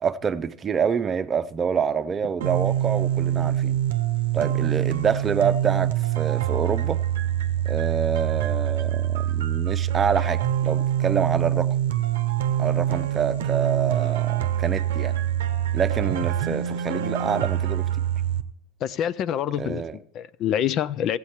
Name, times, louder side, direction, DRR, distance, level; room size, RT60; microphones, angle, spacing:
voice 1, 0.0-3.8 4.3-7.0 7.6-11.8 12.6-15.2 15.7-17.9 19.6-20.0, right 6 dB, 30° right, 0.7 m, -27 dB
sound 1, 2.4-18.4, right 11 dB, 80° right, 0.7 m, -25 dB
voice 2, 18.8-21.2, left 10 dB, 45° left, 0.4 m, -26 dB
15.0 x 8.2 x 4.3 m
hypercardioid pair, 90°, 0 cm